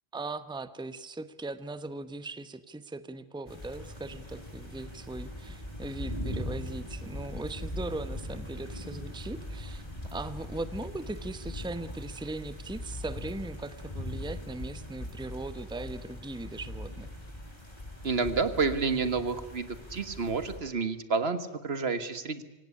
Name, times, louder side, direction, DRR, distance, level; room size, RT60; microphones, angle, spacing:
voice 1, 0.1-9.8 10.1-17.1, right 2 dB, 5° right, 13 dB, 0.9 m, -39 dB
sound 1, 3.5-20.6, left 1 dB, 35° left, 7.8 m, -40 dB
voice 2, 18.0-22.4, right 4 dB, 70° right, 11 dB, 1.8 m, -29 dB
25.5 x 18.0 x 9.9 m, 1.0 s
omnidirectional pair, 1.1 m